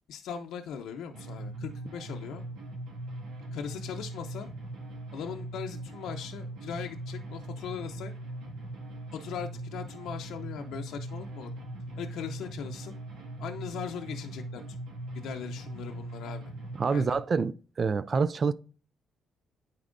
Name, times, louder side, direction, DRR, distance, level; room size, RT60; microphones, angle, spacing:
voice 1, 0.1-2.4 3.5-4.5 5.1-8.1 9.1-11.5 12.0-12.9 13.4-14.8 15.1-16.4 16.9-17.2, left 7 dB, 80° left, 0.6 m, -39 dB
sound 1, 1.1-17.1, right 1 dB, 90° right, 1.8 m, -40 dB
voice 2, 16.8-18.5, right 5 dB, 40° right, 0.3 m, -27 dB
9.6 x 4.1 x 2.5 m
cardioid pair, 90°, 0 cm